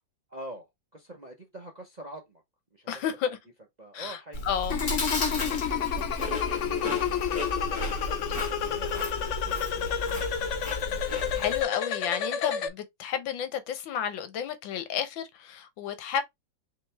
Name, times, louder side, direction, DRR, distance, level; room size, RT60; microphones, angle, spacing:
voice 1, 0.3-2.4 2.7-3.4 3.8-4.5 5.2-7.0 7.4-10.5 11.1-11.4, right 1 dB, 40° right, 0.6 m, -46 dB
voice 2, 2.9-3.4 3.9-4.2 4.5-4.7 11.3-16.2, left 9 dB, 85° left, 1.6 m, -31 dB
Chewing mastication, 4.3-11.6, left 1 dB, 50° left, 2.5 m, -34 dB
sound 1, 4.7-12.7, left 8 dB, 65° left, 0.7 m, -30 dB
5.2 x 3.0 x 3.4 m
omnidirectional pair, 2.1 m